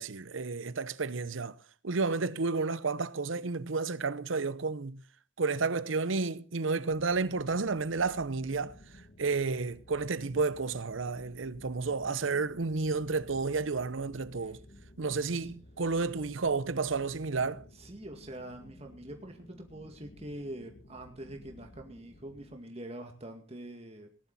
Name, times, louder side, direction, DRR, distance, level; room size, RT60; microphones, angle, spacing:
voice 1, 0.0-1.5 1.8-5.0 5.4-8.7 9.2-14.6 15.0-17.6, right 4 dB, 85° right, 0.8 m, -31 dB
sound 1, 6.9-22.6, left 1 dB, 45° left, 1.5 m, -55 dB
voice 2, 15.1-15.5 17.7-24.1, right 1 dB, 30° right, 2.2 m, -45 dB
18.5 x 11.5 x 4.2 m
head